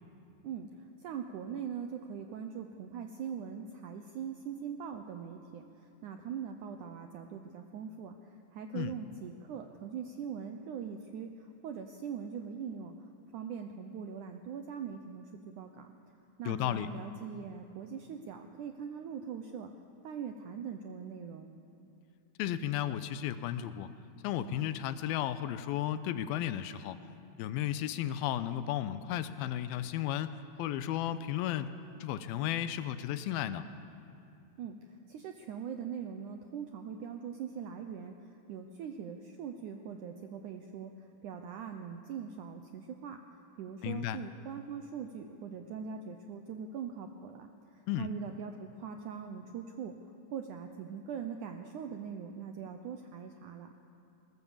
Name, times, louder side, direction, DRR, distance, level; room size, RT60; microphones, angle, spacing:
voice 1, 0.4-15.9 16.4-19.7 20.0-21.5 34.6-43.2 43.6-50.0 50.3-53.7, right 7 dB, 75° right, 5 dB, 1.9 m, -42 dB
voice 2, 16.5-16.9 22.4-23.9 24.2-27.0 27.4-31.7 32.0-33.7 43.8-44.2 47.9-48.1, left 11 dB, 80° left, 12 dB, 2.5 m, -34 dB
21.5 x 20.0 x 7.3 m, 2.6 s
omnidirectional pair, 4.5 m